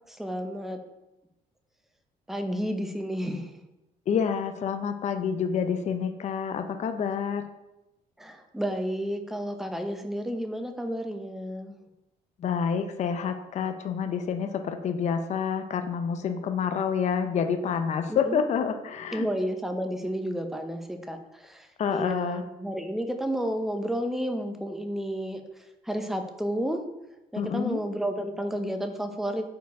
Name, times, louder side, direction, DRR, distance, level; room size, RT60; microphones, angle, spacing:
voice 1, 0.1-0.8 2.3-3.5 8.2-11.8 18.1-18.4 19.1-26.8 27.3-29.5, equal, ahead, 6 dB, 0.6 m, -31 dB
voice 2, 4.1-7.5 12.4-19.3 21.8-22.4 27.4-27.8, left 7 dB, 45° left, 8 dB, 0.5 m, -28 dB
4.7 x 4.5 x 4.6 m, 0.97 s
cardioid pair, 110°, 17 cm